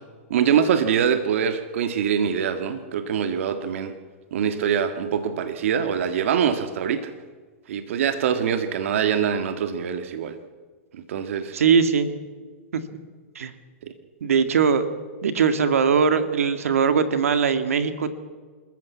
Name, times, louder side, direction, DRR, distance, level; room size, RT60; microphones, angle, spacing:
voice 1, 0.3-3.9 4.3-7.1 7.7-10.4 10.9-11.5 13.8-13.9, right 8 dB, 65° right, 9 dB, 1.7 m, -24 dB
voice 2, 11.5-12.1 12.7-12.8 13.4-13.5 14.2-14.9 15.2-18.1, right 6 dB, 85° right, 10 dB, 2.0 m, -20 dB
27.0 x 14.5 x 8.5 m, 1.5 s
hypercardioid pair, 130°, 7 cm